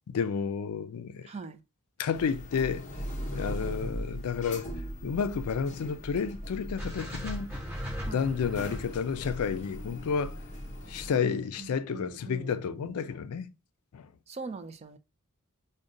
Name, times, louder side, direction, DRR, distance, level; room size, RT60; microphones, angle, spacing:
voice 1, 0.1-1.3 2.0-2.9 3.3-4.7 5.0-7.5 8.0-10.3 10.9-13.5 13.9-14.1, left 6 dB, 80° left, 0.4 m, -31 dB
voice 2, 1.3-1.6 8.1-8.2 11.2-12.8 14.3-15.0, right 4 dB, 30° right, 0.3 m, -42 dB
sound 1, 2.1-11.1, equal, 30° left, 0.6 m, -39 dB
sound 2, 6.8-11.0, equal, 10° right, 1.2 m, -39 dB
4.9 x 2.2 x 2.5 m
head